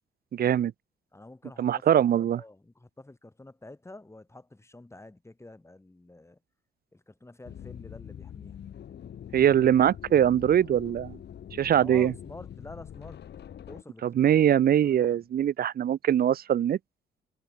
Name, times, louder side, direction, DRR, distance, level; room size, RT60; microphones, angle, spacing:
voice 1, 0.3-0.7 1.6-2.4 9.3-11.2 11.5-12.1 14.0-16.8, right 10 dB, 50° right, 0.6 m, -22 dB
voice 2, 1.1-6.4 6.9-8.6 11.8-13.2 13.7-15.3, left 2 dB, 15° left, 6.7 m, -49 dB
sound 1, 7.4-13.8, left 9 dB, 60° left, 2.1 m, -44 dB
cardioid pair, 90°, 20 cm